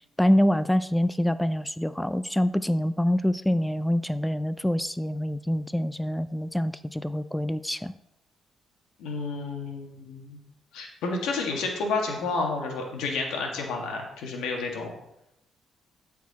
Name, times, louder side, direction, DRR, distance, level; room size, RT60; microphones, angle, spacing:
voice 1, 0.2-7.9, equal, 5° left, 14 dB, 0.3 m, -25 dB
voice 2, 9.0-10.4 10.7-14.9, left 3 dB, 90° left, 1 dB, 1.7 m, -30 dB
12.5 x 4.6 x 4.1 m, 0.84 s
cardioid pair, 90°, 0 cm